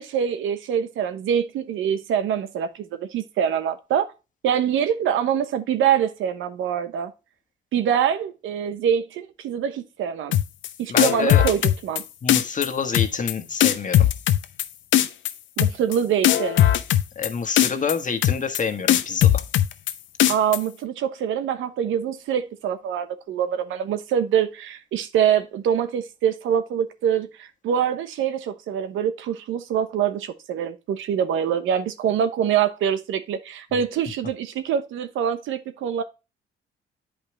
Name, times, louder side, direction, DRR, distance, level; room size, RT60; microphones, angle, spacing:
voice 1, 0.0-4.1 4.4-7.1 7.7-10.4 10.8-12.0 15.6-16.6 20.2-36.0, right 8 dB, 85° right, 1.1 m, -24 dB
sound 1, 10.3-10.7 11.0-12.0 12.3-12.7 12.9-13.3 13.6-14.6 14.9-15.3 15.6-16.0 16.2-17.3 17.6-17.9 18.2-18.6 18.9-19.9 20.2-20.6, left 12 dB, 75° left, 0.7 m, -18 dB
voice 2, 10.9-11.4 12.2-14.1 17.1-19.4, left 6 dB, 40° left, 1.4 m, -27 dB
8.7 x 5.3 x 3.2 m
cardioid pair, 90°, 20 cm